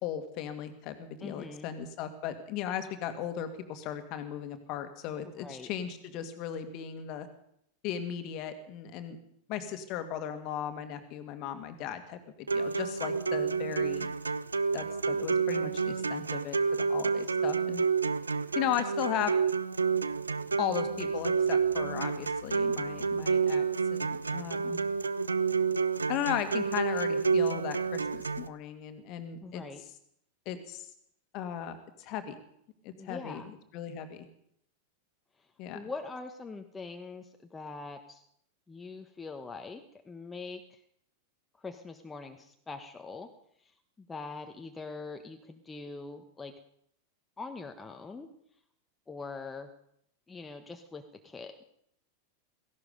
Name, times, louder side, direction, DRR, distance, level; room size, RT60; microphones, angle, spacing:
voice 1, 0.0-7.3 7.8-9.2 9.5-12.2 12.5-14.1 14.7-17.8 18.6-19.3 20.6-23.6 23.9-24.8 26.1-29.6 30.5-30.9 31.3-32.4 32.8-34.3 35.6-35.8, left 9 dB, 40° left, 9 dB, 1.9 m, -36 dB
voice 2, 1.2-1.7 5.4-5.7 29.4-29.8 33.0-33.5 35.7-38.2 38.7-40.8 41.6-43.3 44.0-46.5 47.4-48.3 49.1-49.7 50.3-51.6, left 4 dB, 10° left, 5 dB, 1.3 m, -43 dB
sound 1, 12.5-28.5, right 5 dB, 75° right, 0.6 m, -29 dB
17.0 x 16.0 x 5.3 m, 0.73 s
figure-of-eight pair, 90°, 0 cm